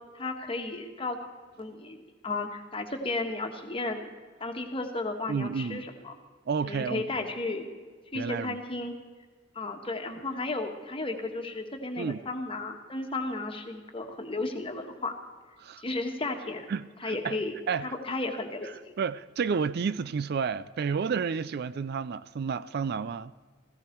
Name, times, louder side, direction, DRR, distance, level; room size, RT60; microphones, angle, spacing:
voice 1, 0.1-1.2 1.6-2.0 2.2-4.0 4.4-6.2 6.6-7.6 8.1-8.9 9.5-15.1 15.8-16.7 17.0-17.5 17.8-18.9, left 2 dB, 30° left, 1.4 m, -34 dB
voice 2, 5.3-5.9 6.5-7.0 8.1-8.6 12.0-12.2 15.6-15.8 16.7-17.4 17.7-17.9 19.0-23.3, right 5 dB, 55° right, 0.4 m, -31 dB
15.5 x 15.0 x 4.5 m
head